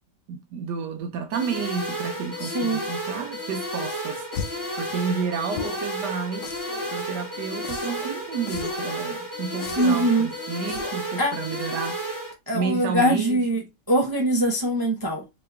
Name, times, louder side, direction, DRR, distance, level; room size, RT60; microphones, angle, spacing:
voice 1, 0.3-6.5 6.9-11.9 12.5-13.4, right 6 dB, 80° right, 1.3 m, -31 dB
sound 1, 1.3-12.3, equal, 15° right, 1.2 m, -32 dB
voice 2, 2.4-2.8 9.8-10.3 11.2-11.4 12.5-13.6 13.9-15.2, right 1 dB, 35° right, 0.3 m, -22 dB
sound 2, 4.3-4.7 5.5-5.9 6.4-6.9 7.6-8.1 8.5-8.9 9.6-10.1 10.7-11.1, left 6 dB, 75° left, 1.1 m, -35 dB
3.4 x 3.0 x 3.3 m
omnidirectional pair, 1.8 m